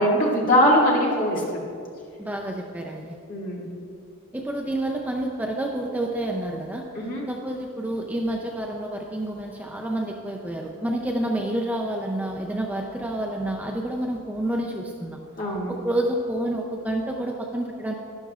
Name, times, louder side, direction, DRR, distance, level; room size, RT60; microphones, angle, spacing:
voice 1, 0.0-1.4 3.3-3.7 7.0-7.2 15.4-15.7, equal, 40° left, -4 dB, 1.9 m, -21 dB
voice 2, 2.2-3.1 4.3-6.8 7.3-15.2 15.7-17.9, right 1 dB, 5° right, 1 dB, 0.4 m, -29 dB
11.5 x 11.0 x 2.4 m, 2.4 s
head